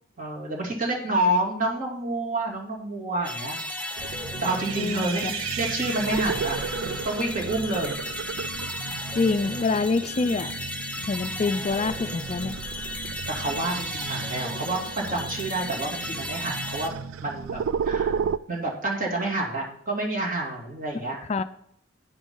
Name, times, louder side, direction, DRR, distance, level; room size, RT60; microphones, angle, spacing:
voice 1, 0.2-3.6 3.9-4.1 4.4-7.9 13.3-16.9 17.2-18.2 18.5-21.2, right 2 dB, 40° right, -1 dB, 2.8 m, -29 dB
sound 1, 3.2-16.9, left 1 dB, 5° left, 1.0 m, -35 dB
sound 2, 4.0-18.4, right 6 dB, 85° right, 0.4 m, -34 dB
voice 2, 4.8-5.3 9.1-10.5 11.0-12.6 21.3-21.4, left 3 dB, 35° left, 11 dB, 0.4 m, -26 dB
10.5 x 9.8 x 3.9 m, 0.70 s
head